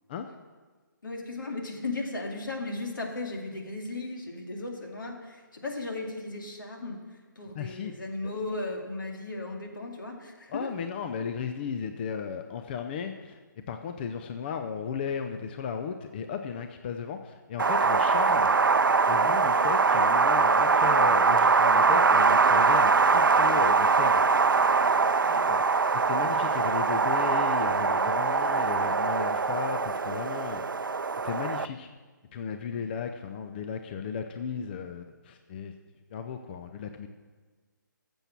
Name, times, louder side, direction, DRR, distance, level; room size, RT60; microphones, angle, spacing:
voice 1, 1.0-10.7 25.2-25.5 32.7-32.9, left 2 dB, 75° left, 1 dB, 2.3 m, -36 dB
voice 2, 7.6-7.9 10.5-13.4 13.7-18.5 19.1-24.2 25.5-25.6 25.9-30.6 31.2-31.9 32.3-35.7 36.1-37.1, left 6 dB, 30° left, 6 dB, 0.5 m, -35 dB
Wind, 17.6-31.6, right 4 dB, 85° right, 0.5 m, -23 dB
13.5 x 7.0 x 5.9 m, 1.4 s
figure-of-eight pair, 150°, 11 cm